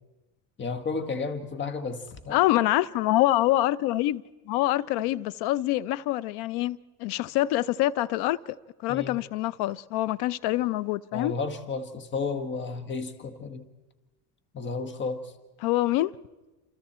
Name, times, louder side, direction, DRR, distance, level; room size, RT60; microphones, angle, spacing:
voice 1, 0.6-2.4 8.9-9.2 11.1-13.6 14.5-15.3, left 4 dB, 25° left, 1.6 m, -32 dB
voice 2, 2.3-8.6 8.8-11.3 15.6-16.1, left 15 dB, 65° left, 0.8 m, -25 dB
28.0 x 27.5 x 4.4 m
cardioid pair, 130°, 42 cm